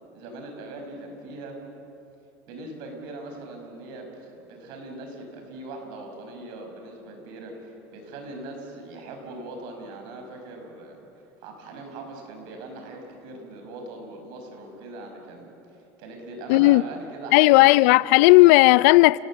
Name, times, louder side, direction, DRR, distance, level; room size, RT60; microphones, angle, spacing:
voice 1, 0.1-1.6 2.5-11.0 11.4-17.7, right 2 dB, 70° right, 5.8 m, -40 dB
voice 2, 16.5-16.8 17.3-19.2, left 21 dB, 80° left, 0.4 m, -14 dB
30.0 x 19.0 x 7.6 m
supercardioid pair, 130°, 8 cm